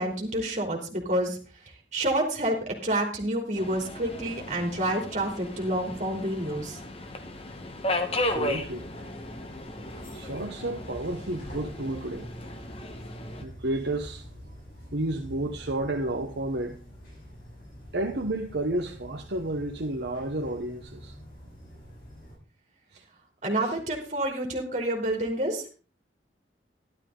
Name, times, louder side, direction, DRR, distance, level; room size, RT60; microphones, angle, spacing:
voice 1, 0.0-1.4 1.9-6.8 23.4-25.7, right 1 dB, 40° right, 3.3 m, -28 dB
Subway metro underground, 3.6-13.4, left 1 dB, 30° left, 1.3 m, -35 dB
sound 1, 8.1-22.3, equal, 50° left, 7.2 m, -46 dB
voice 2, 8.1-8.9 10.1-12.3 13.4-14.3 14.9-16.8 17.9-21.1 22.9-23.0 23.6-23.7, right 1 dB, 65° right, 1.0 m, -31 dB
12.0 x 11.5 x 3.9 m
head